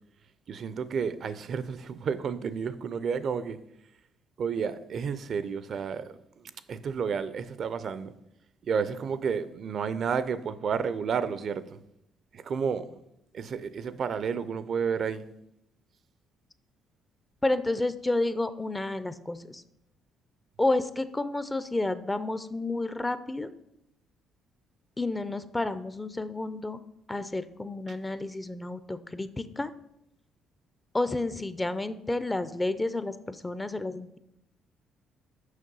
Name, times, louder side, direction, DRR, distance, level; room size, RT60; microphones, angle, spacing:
voice 1, 0.5-3.6 4.4-8.1 8.6-11.8 12.3-13.0 13.3-15.2, right 6 dB, 55° right, 0.5 m, -31 dB
voice 2, 17.4-19.6 20.6-23.5 25.0-26.8 27.1-29.7 30.9-34.2, left 2 dB, 15° left, 0.5 m, -30 dB
6.4 x 5.4 x 5.4 m
supercardioid pair, 80°, 0 cm